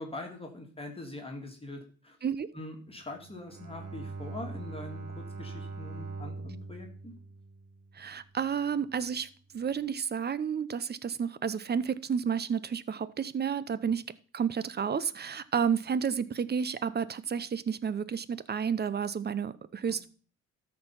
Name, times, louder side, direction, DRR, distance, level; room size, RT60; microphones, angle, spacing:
voice 1, 0.0-2.2 2.5-7.1 19.9-20.0, left 2 dB, 20° left, 2.1 m, -43 dB
Bowed string instrument, 3.1-8.4, right 3 dB, 55° right, 1.4 m, -42 dB
voice 2, 8.0-9.3 9.5-14.0 14.3-20.1, right 7 dB, 35° right, 0.6 m, -31 dB
13.0 x 4.6 x 5.6 m
cardioid pair, 90°, 30 cm